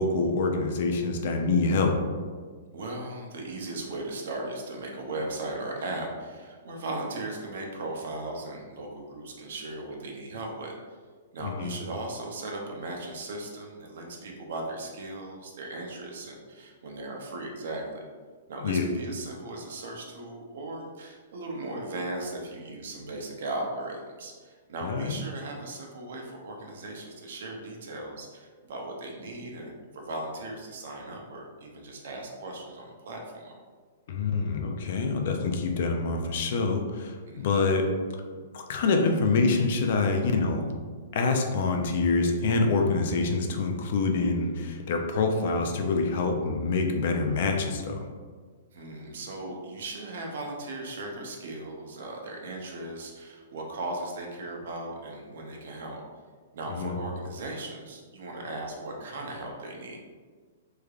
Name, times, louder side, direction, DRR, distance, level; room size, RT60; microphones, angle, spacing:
voice 1, 0.0-2.0 11.4-11.7 18.6-18.9 24.8-25.2 34.1-37.9 38.5-40.7 41.1-48.1 56.8-56.9, left 3 dB, 40° left, 4 dB, 0.3 m, -26 dB
voice 2, 2.7-10.8 11.3-18.0 18.5-33.6 37.3-37.6 48.7-56.0 56.5-60.0, right 2 dB, 55° right, 1 dB, 0.6 m, -37 dB
3.4 x 3.2 x 2.4 m, 1.5 s
hypercardioid pair, 180°, 0 cm